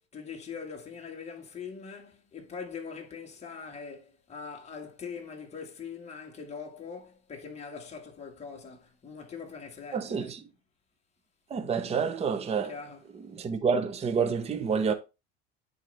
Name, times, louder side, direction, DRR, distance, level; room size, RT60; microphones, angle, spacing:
voice 1, 0.0-10.3 12.6-13.2, left 5 dB, 20° left, 1.8 m, -42 dB
voice 2, 9.9-10.4 11.5-12.7 13.3-14.9, right 6 dB, 20° right, 0.7 m, -28 dB
9.1 x 4.0 x 3.3 m
supercardioid pair, 130°, 33 cm